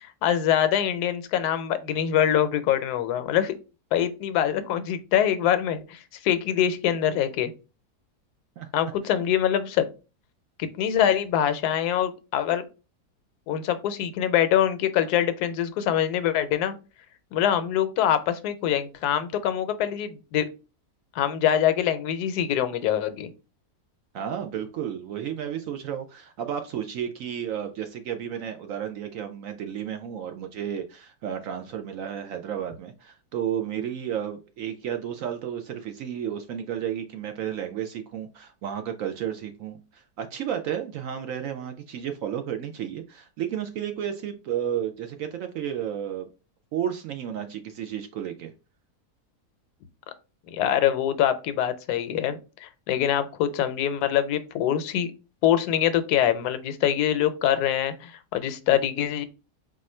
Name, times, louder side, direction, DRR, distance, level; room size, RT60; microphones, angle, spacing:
voice 1, 0.0-3.5 3.9-7.5 8.7-9.9 10.6-12.6 13.5-16.8 17.3-20.5 21.1-23.3 50.5-55.1 55.4-59.2, left 10 dB, 80° left, 1.1 m, -24 dB
voice 2, 24.1-46.3 46.7-48.5, right 9 dB, 70° right, 0.8 m, -32 dB
4.2 x 2.5 x 4.2 m
omnidirectional pair, 1.7 m